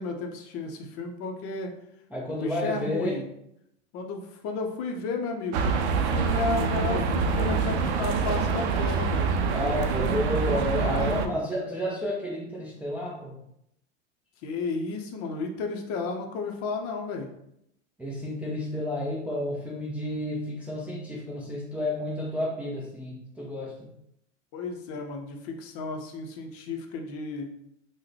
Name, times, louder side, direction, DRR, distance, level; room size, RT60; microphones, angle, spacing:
voice 1, 0.0-1.8 2.3-3.3 3.9-9.3 10.0-11.5 14.4-17.3 24.5-27.5, left 4 dB, 40° left, 3 dB, 0.6 m, -33 dB
voice 2, 2.1-3.2 9.5-13.4 18.0-23.7, equal, 5° right, -4 dB, 0.4 m, -31 dB
sound 1, 5.5-11.3, right 5 dB, 65° right, 0.5 m, -26 dB
3.5 x 2.2 x 3.2 m, 0.77 s
hypercardioid pair, 110°, 35 cm